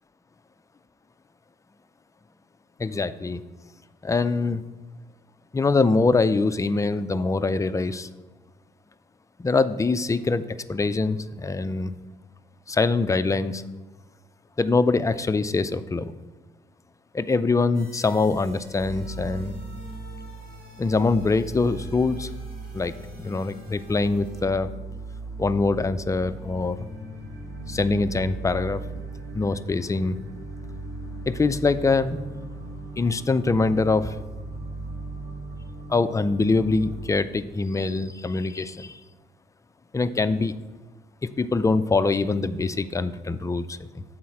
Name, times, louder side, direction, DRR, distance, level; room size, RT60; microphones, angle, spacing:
voice 1, 2.8-3.4 4.0-4.6 5.5-8.1 9.4-11.9 12.7-13.6 14.6-16.1 17.1-19.6 20.8-22.3 22.7-22.9 23.2-24.7 25.4-26.9 27.7-28.8 29.3-30.2 31.3-32.2 33.0-34.2 35.9-39.0 39.9-40.6 41.2-44.0, left 3 dB, 15° left, 12 dB, 0.3 m, -24 dB
sound 1, 17.7-24.4, equal, 50° right, 2.6 m, -51 dB
sound 2, 18.8-37.1, right 2 dB, 65° right, 2.4 m, -38 dB
7.6 x 4.0 x 5.7 m, 1.2 s
cardioid pair, 90°, 20 cm